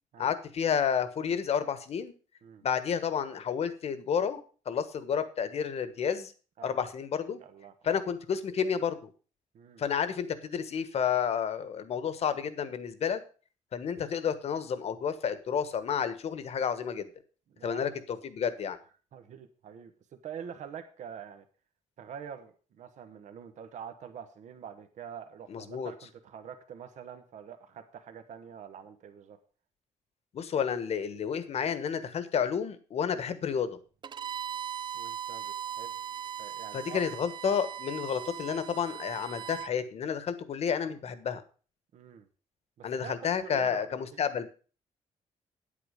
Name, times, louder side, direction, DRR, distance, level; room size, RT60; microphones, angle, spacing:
voice 1, 0.2-2.1 2.6-6.3 6.6-7.4 7.8-9.0 9.8-13.2 13.7-17.1 17.6-17.9 18.2-18.8 25.5-25.9 30.3-33.8 36.7-41.4 42.8-44.5, left 7 dB, 55° left, 12 dB, 1.3 m, -30 dB
voice 2, 7.4-8.0 9.5-9.8 17.5-18.0 19.1-19.9 20.2-21.4 22.0-29.4 34.9-35.9 36.4-37.0 41.9-42.3 42.8-44.2, right 8 dB, 70° right, 8 dB, 1.2 m, -45 dB
Bowed string instrument, 34.0-39.7, right 9 dB, 35° right, 0.4 m, -39 dB
9.7 x 8.8 x 5.1 m, 0.38 s
cardioid pair, 140°, 13 cm